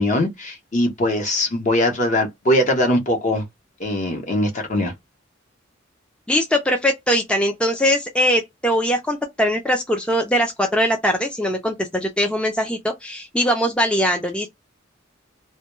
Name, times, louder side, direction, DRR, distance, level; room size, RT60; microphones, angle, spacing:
voice 1, 0.0-3.4 3.8-4.9, left 1 dB, 40° left, 0.8 m, -21 dB
voice 2, 6.3-14.5, equal, 5° left, 0.4 m, -21 dB
2.2 x 2.1 x 3.0 m
head